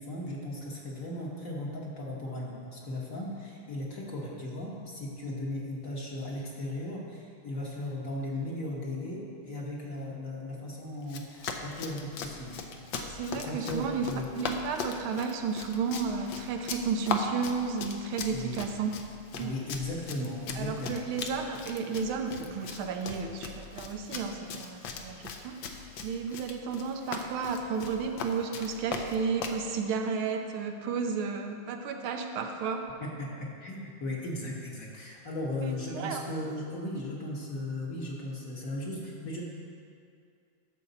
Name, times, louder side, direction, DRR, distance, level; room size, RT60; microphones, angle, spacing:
voice 1, 0.0-12.6 13.3-14.3 18.3-18.6 19.3-21.0 33.0-39.4, left 1 dB, 45° left, -3 dB, 1.4 m, -37 dB
Run, 11.0-29.6, left 5 dB, 70° left, 1.4 m, -39 dB
voice 2, 12.9-14.1 14.4-18.9 19.4-19.5 20.6-25.6 26.0-32.8 35.6-36.2, right 5 dB, 80° right, 4 dB, 1.5 m, -32 dB
12.0 x 7.0 x 4.0 m, 2.4 s
omnidirectional pair, 2.3 m